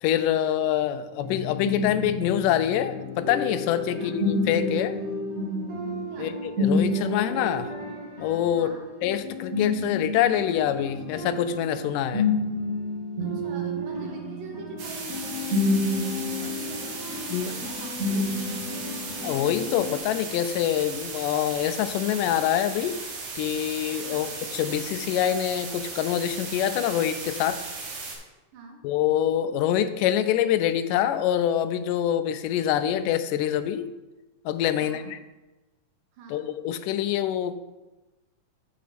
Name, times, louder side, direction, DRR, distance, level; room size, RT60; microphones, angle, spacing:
voice 1, 0.0-5.0 6.2-7.7 8.2-8.7 9.0-12.3 17.3-17.5 19.2-23.0 23.4-27.6 28.8-33.9 34.5-35.2 36.3-37.6, left 11 dB, 85° left, 12 dB, 2.1 m, -25 dB
sound 1, 1.2-20.0, left 2 dB, 35° right, 1.5 m, -30 dB
voice 2, 8.5-8.9 13.2-15.8 16.4-18.7 24.0-24.3 28.5-28.9 34.7-35.0 36.1-36.5, right 3 dB, 85° right, 2 dB, 3.0 m, -44 dB
sound 2, 14.8-28.2, right 4 dB, 70° right, 2.9 m, -36 dB
8.4 x 7.4 x 4.2 m, 1.1 s
omnidirectional pair, 3.7 m